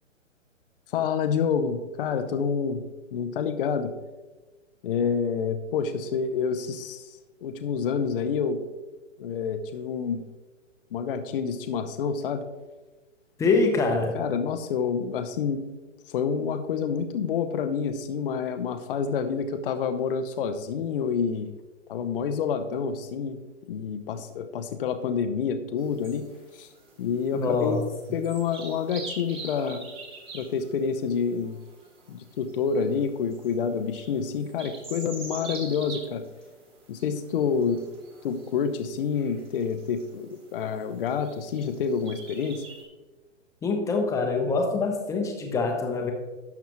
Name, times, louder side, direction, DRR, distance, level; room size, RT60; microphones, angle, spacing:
voice 1, 0.9-2.8 3.1-3.9 4.8-8.6 9.2-10.2 10.9-12.4 14.1-15.7 16.1-21.5 21.9-23.4 23.7-26.3 26.5-26.7 27.0-27.8 28.1-29.8 30.3-31.6 32.1-36.2 36.9-37.8 38.2-42.6, left 6 dB, 45° left, 8 dB, 0.7 m, -28 dB
voice 2, 13.4-14.2 27.3-27.8 43.6-46.1, left 3 dB, 10° left, 3 dB, 0.8 m, -24 dB
sound 1, 25.8-42.8, right 3 dB, 15° right, 1.7 m, -46 dB
11.5 x 7.0 x 3.0 m, 1.2 s
hypercardioid pair, 140°, 38 cm